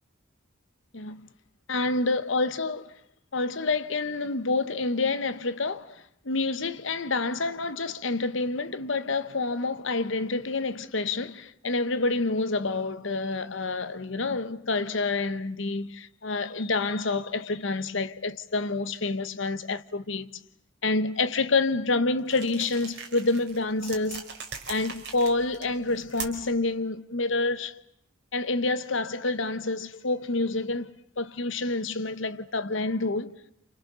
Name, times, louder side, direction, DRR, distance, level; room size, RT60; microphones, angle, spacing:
voice 1, 0.9-1.3 1.7-2.9 3.3-20.3 20.8-24.3 24.7-27.8 28.3-33.3, left 3 dB, 70° left, 1.1 m, -28 dB
sound 1, 22.3-26.6, right 6 dB, 55° right, 4.3 m, -41 dB
29.0 x 28.5 x 6.9 m
head